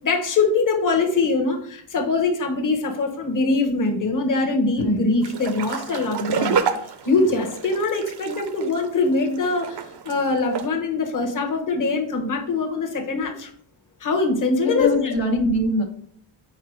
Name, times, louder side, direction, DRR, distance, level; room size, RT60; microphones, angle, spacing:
voice 1, 0.0-9.8 10.0-13.5 14.0-15.1, left 3 dB, 40° left, 2 dB, 1.1 m, -23 dB
sound 1, 5.2-10.7, right 6 dB, 55° right, 0.7 m, -29 dB
voice 2, 14.6-15.8, left 2 dB, 65° left, 1 dB, 1.1 m, -22 dB
4.7 x 4.4 x 4.6 m, 0.63 s
cardioid pair, 95°, 49 cm